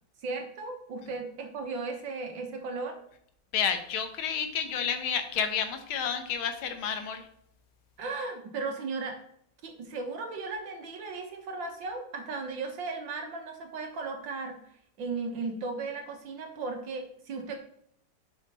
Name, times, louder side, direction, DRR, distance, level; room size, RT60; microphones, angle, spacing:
voice 1, 0.2-3.0 8.0-9.2 9.6-14.6 15.0-17.6, right 3 dB, 65° right, 4 dB, 1.9 m, -36 dB
voice 2, 3.5-7.3, left 7 dB, 80° left, 7 dB, 1.8 m, -30 dB
8.0 x 5.7 x 4.2 m, 0.69 s
omnidirectional pair, 2.3 m